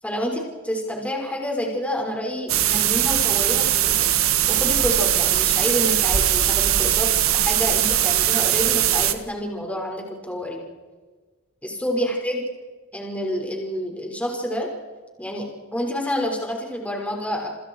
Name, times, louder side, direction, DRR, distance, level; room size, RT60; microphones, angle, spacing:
voice 1, 0.0-4.1 4.5-10.6 11.6-12.4 12.9-14.7 15.2-17.5, equal, 5° left, 0 dB, 6.1 m, -28 dB
sound 1, 2.5-9.1, right 11 dB, 65° right, 1.8 m, -20 dB
29.5 x 28.0 x 4.9 m, 1.3 s
head